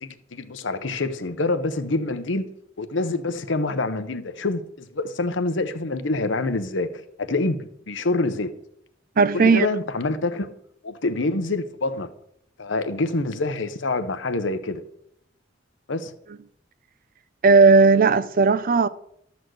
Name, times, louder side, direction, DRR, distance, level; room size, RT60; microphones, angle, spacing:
voice 1, 0.0-2.4 2.8-8.5 9.3-10.5 10.8-12.1 12.6-14.8 15.9-16.1, left 2 dB, 70° left, 0.9 m, -26 dB
voice 2, 9.2-9.7 17.4-18.9, right 4 dB, 50° right, 0.5 m, -16 dB
12.5 x 4.3 x 7.8 m
head